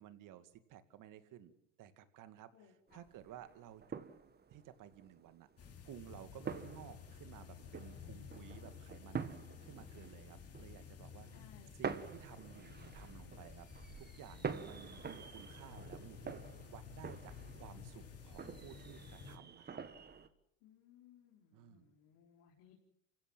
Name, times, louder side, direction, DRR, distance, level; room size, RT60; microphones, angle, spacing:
voice 1, 0.0-1.5 1.8-4.0 4.5-5.5 5.8-9.4 9.6-11.3 11.8-16.4 16.7-19.8 21.5-21.9, right 11 dB, 55° right, 11 dB, 2.4 m, -55 dB
voice 2, 2.5-3.1 11.3-12.0 20.6-22.8, left 9 dB, 70° left, -2 dB, 5.0 m, -64 dB
sound 1, 2.9-20.3, right 6 dB, 25° right, 1.8 m, -48 dB
sound 2, 5.6-19.4, left 7 dB, 40° left, 3.2 m, -53 dB
28.5 x 16.5 x 7.6 m, 0.75 s
supercardioid pair, 95°, 39 cm